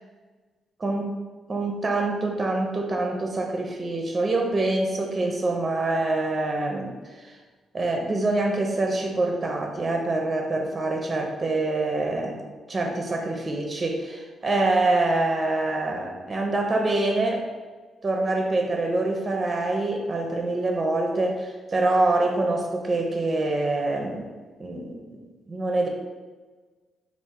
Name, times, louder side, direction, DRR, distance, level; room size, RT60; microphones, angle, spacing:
voice 1, 0.8-1.2 1.5-7.3 7.7-12.4 12.7-17.4 18.0-24.3 24.6-25.2 25.5-25.9, right 2 dB, 35° right, 2 dB, 0.5 m, -25 dB
3.3 x 2.4 x 3.6 m, 1.3 s
supercardioid pair, 65°, 0 cm